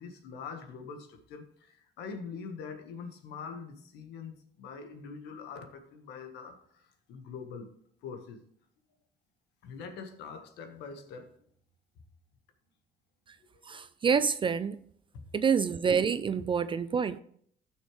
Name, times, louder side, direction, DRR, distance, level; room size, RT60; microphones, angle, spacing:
voice 1, 0.0-7.7 8.0-8.4 9.6-11.3 13.5-13.8 15.1-15.2, left 5 dB, 85° left, 1.5 m, -44 dB
voice 2, 13.7-14.8 15.3-17.2, right 6 dB, 30° right, 0.4 m, -27 dB
14.5 x 6.4 x 3.3 m
cardioid pair, 110°, 17 cm